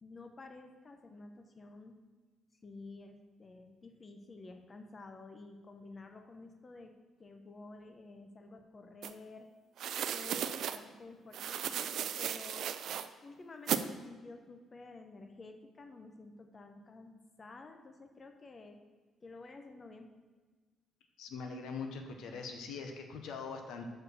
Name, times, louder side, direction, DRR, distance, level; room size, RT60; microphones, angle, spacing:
voice 1, 0.0-2.0 2.6-6.9 7.2-9.5 10.1-12.7 13.2-18.8 19.2-20.1, left 3 dB, 35° left, 5 dB, 0.8 m, -51 dB
sound 1, 9.0-9.1 9.8-10.8 11.3-13.1 13.7-13.8, right 9 dB, 75° right, 0.4 m, -35 dB
voice 2, 21.2-23.9, left 4 dB, 85° left, 4 dB, 1.0 m, -42 dB
6.7 x 4.8 x 6.6 m, 1.4 s
cardioid pair, 90°, 0 cm